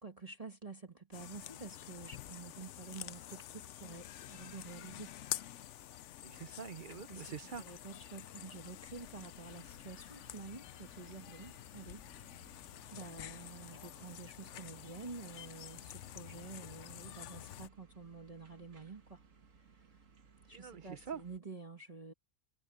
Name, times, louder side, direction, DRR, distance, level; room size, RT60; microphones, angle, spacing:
voice 1, 0.0-5.1 6.9-7.2 7.6-12.0 12.9-19.2 19.6-20.0 20.4-22.1, right 4 dB, 25° right, 1.7 m, -49 dB
sound 1, 1.1-17.7, left 12 dB, 65° left, 0.9 m, -48 dB
voice 2, 6.2-7.8 20.5-21.2, right 7 dB, 45° right, 0.8 m, -45 dB
sound 2, 9.2-21.4, right 5 dB, 70° right, 1.9 m, -63 dB
omnidirectional pair, 1.4 m